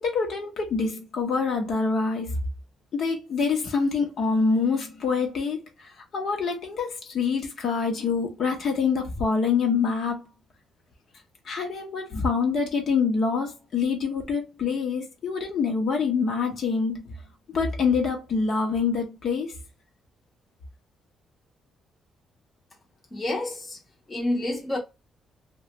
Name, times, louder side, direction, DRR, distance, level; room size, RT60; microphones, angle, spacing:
voice 1, 0.0-2.4 2.9-10.2 11.4-17.1 17.5-19.5, left 5 dB, 50° left, 0.8 m, -26 dB
voice 2, 23.1-23.8 24.1-24.8, left 1 dB, 15° left, 0.8 m, -28 dB
3.0 x 2.2 x 2.9 m
cardioid pair, 165°, 0 cm